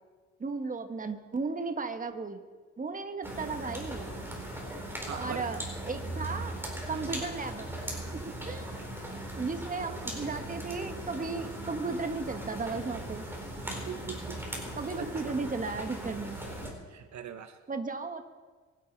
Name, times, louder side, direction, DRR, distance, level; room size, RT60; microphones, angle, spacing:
voice 1, 0.4-2.4 2.8-4.1 5.1-5.6 5.9-6.6 6.9-7.7 8.1-8.8 9.3-13.3 14.8-16.4 17.7-18.2, right 4 dB, 25° right, 7 dB, 1.5 m, -35 dB
sound 1, 3.2-16.7, right 1 dB, 5° right, 4.5 m, -39 dB
voice 2, 5.1-5.5 6.9-7.3 13.9-14.6 15.0-15.4 16.9-17.6, right 9 dB, 65° right, 9 dB, 1.0 m, -42 dB
23.5 x 10.0 x 4.7 m, 1.4 s
cardioid pair, 90°, 30 cm